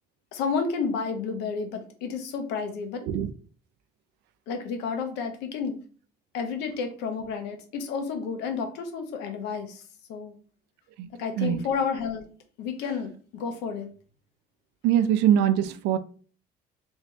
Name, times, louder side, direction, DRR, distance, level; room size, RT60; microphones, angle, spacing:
voice 1, 0.3-3.0 4.5-5.8 6.3-9.8 10.1-10.4 11.2-12.2 12.6-13.9, left 5 dB, 90° left, 0.8 m, -31 dB
voice 2, 14.8-16.0, right 10 dB, 85° right, 0.4 m, -22 dB
3.4 x 2.7 x 3.1 m
cardioid pair, 110°, 17 cm